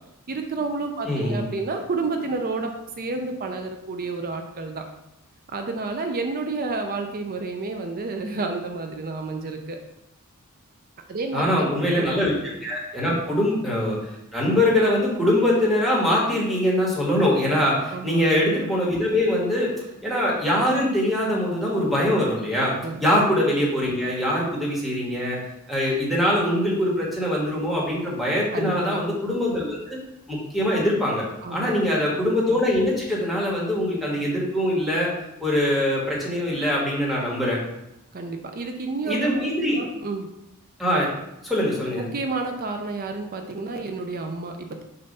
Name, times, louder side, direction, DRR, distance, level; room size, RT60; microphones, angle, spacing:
voice 1, 0.3-4.9 5.5-9.8 11.1-12.1 13.1-13.2 17.9-18.2 22.8-23.1 28.5-29.0 31.4-32.0 38.1-39.4 39.7-40.3 42.0-44.8, right 3 dB, 40° right, 5 dB, 0.5 m, -30 dB
voice 2, 1.0-1.5 11.3-19.7 20.0-22.7 23.0-25.4 25.7-30.0 30.3-31.2 31.5-35.1 35.4-37.6 39.0-39.8 40.8-41.1 41.4-42.1, left 1 dB, ahead, -5 dB, 1.5 m, -23 dB
6.8 x 2.7 x 5.4 m, 0.86 s
head